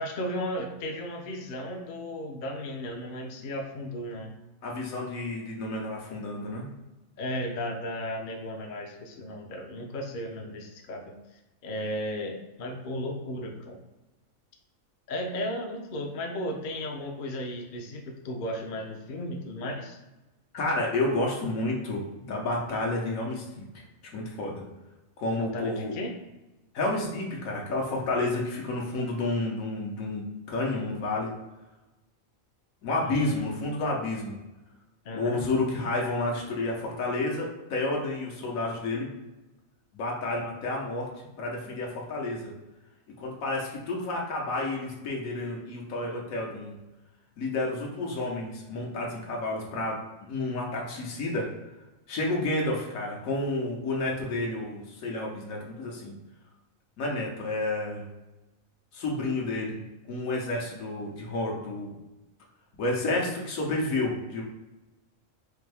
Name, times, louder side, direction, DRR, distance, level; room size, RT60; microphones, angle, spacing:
voice 1, 0.0-4.3 7.2-11.2 11.6-13.8 15.1-20.0 25.3-26.2 33.0-33.4 35.0-35.4, equal, 50° left, 3 dB, 0.6 m, -35 dB
voice 2, 4.6-6.7 20.5-23.6 24.1-24.6 25.2-26.0 26.7-30.2 30.5-31.3 32.8-34.3 35.1-39.1 39.9-41.1 41.4-42.5 43.2-46.8 47.4-51.6 52.1-56.1 57.0-58.1 58.9-59.8 60.1-61.9 62.8-64.4, left 2 dB, 80° left, -2 dB, 1.4 m, -30 dB
4.8 x 2.6 x 3.3 m, 1.0 s
omnidirectional pair, 1.4 m